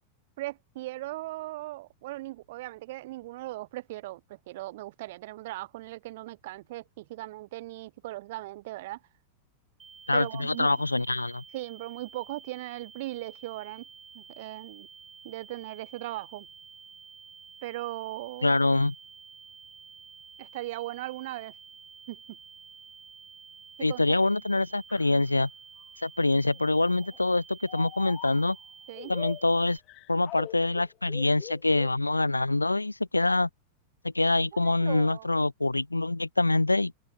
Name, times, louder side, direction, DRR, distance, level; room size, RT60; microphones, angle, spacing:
voice 1, 0.4-9.0 10.1-10.8 11.5-13.8 14.1-14.9 15.2-16.5 17.6-18.5 20.4-21.5 22.1-22.4 23.8-24.2 28.9-29.1 34.6-35.3, right 18 dB, 55° right, 2.5 m, -38 dB
sound 1, 9.8-29.8, right 6 dB, 20° right, 4.4 m, -51 dB
voice 2, 10.1-11.4 18.4-18.9 23.8-25.5 26.0-28.6 29.1-29.8 30.1-33.5 34.0-37.0, left 2 dB, 85° left, 0.9 m, -25 dB
sound 2, 24.9-25.2 25.8-25.9 26.5-27.2 27.7-28.5 28.9-31.9, left 19 dB, 40° left, 5.2 m, -43 dB
open air
figure-of-eight pair, 90°, 0 cm